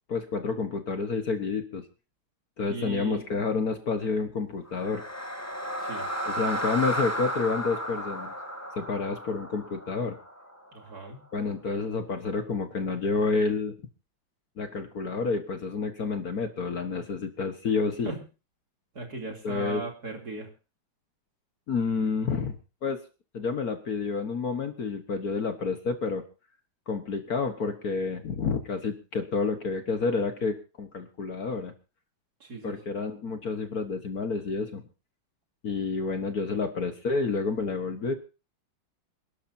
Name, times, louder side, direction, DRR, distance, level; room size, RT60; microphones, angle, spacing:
voice 1, 0.1-1.8 2.6-5.0 6.3-8.3 8.7-10.2 11.3-13.7 14.6-18.1 19.4-19.8 21.7-23.0 23.3-26.2 26.9-31.7 32.6-34.8 35.6-38.1, left 4 dB, 50° left, 7 dB, 1.6 m, -29 dB
voice 2, 2.7-3.3 5.8-6.1 10.7-11.2 18.0-18.2 18.9-20.5 32.4-32.8, right 3 dB, 45° right, 3 dB, 3.4 m, -37 dB
sound 1, 4.7-10.8, right 1 dB, 10° left, 1.4 m, -33 dB
27.5 x 12.0 x 2.7 m, 0.32 s
omnidirectional pair, 2.3 m